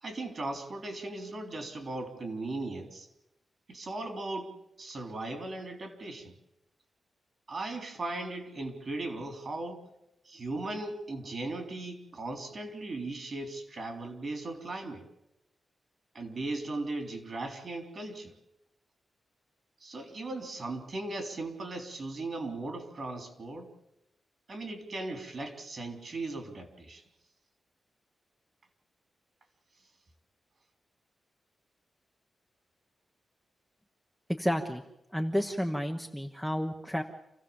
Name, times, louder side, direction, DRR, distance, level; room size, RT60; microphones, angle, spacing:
voice 1, 0.0-3.1 3.7-4.5 4.8-6.4 7.5-9.8 10.2-15.0 16.1-18.3 19.8-23.7 24.5-27.0, right 2 dB, 40° right, 6 dB, 3.6 m, -37 dB
voice 2, 34.3-34.8 35.1-37.0, equal, ahead, 4 dB, 1.2 m, -31 dB
28.0 x 16.0 x 7.2 m, 0.87 s
wide cardioid pair, 145°, 0 cm